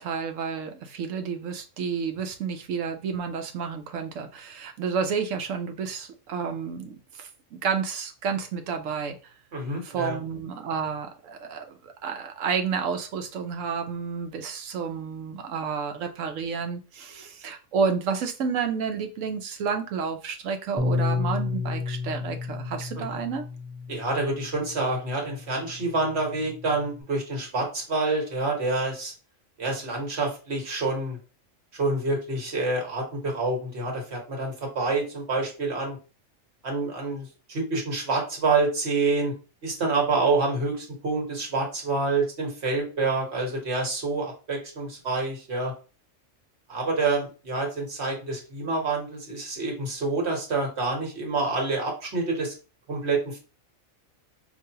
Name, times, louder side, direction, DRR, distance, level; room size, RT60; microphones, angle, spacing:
voice 1, 0.0-9.3 9.8-23.4, right 6 dB, 80° right, 1.0 m, -30 dB
voice 2, 9.5-10.2 23.0-23.1 23.9-29.1 29.6-31.2 31.7-36.0 36.6-39.3 39.6-45.7 46.7-52.5 52.9-53.4, right 3 dB, 55° right, 1.5 m, -27 dB
Bass guitar, 20.8-27.0, left 4 dB, 15° left, 0.5 m, -32 dB
4.9 x 2.6 x 2.8 m
omnidirectional pair, 1.4 m